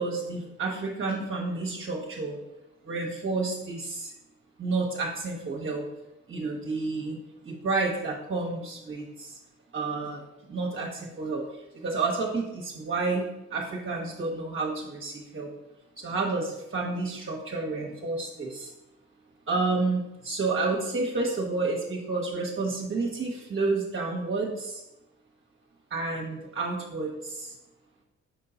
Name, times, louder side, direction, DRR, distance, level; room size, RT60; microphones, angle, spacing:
voice 1, 0.0-2.4 2.8-4.1 4.6-5.8 6.3-7.2 7.4-9.3 9.7-10.2 10.5-11.4 11.8-13.2 13.5-15.5 16.0-18.7 19.5-24.8 25.9-27.5, right 3 dB, 45° right, -1 dB, 1.2 m, -30 dB
6.5 x 3.8 x 3.9 m, 0.94 s
cardioid pair, 90°, 30 cm